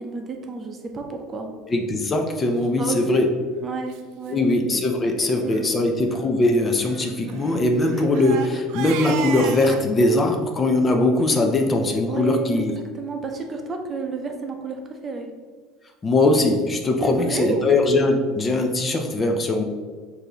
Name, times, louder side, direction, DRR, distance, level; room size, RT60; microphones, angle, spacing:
voice 1, 0.0-1.5 2.8-3.3 3.6-4.5 5.4-5.9 12.1-12.6 12.9-15.3 17.0-17.7, right 3 dB, 30° right, 3 dB, 0.6 m, -30 dB
voice 2, 1.7-3.3 4.3-12.7 16.0-19.6, left 2 dB, 25° left, 3 dB, 0.4 m, -21 dB
Crying sobbing, 3.0-3.2 3.9-4.0 4.3-4.4 4.7-4.9 5.4-5.6 6.8-9.9, right 9 dB, 70° right, 0.4 m, -34 dB
4.5 x 2.7 x 3.8 m, 1.5 s
supercardioid pair, 120°, 0 cm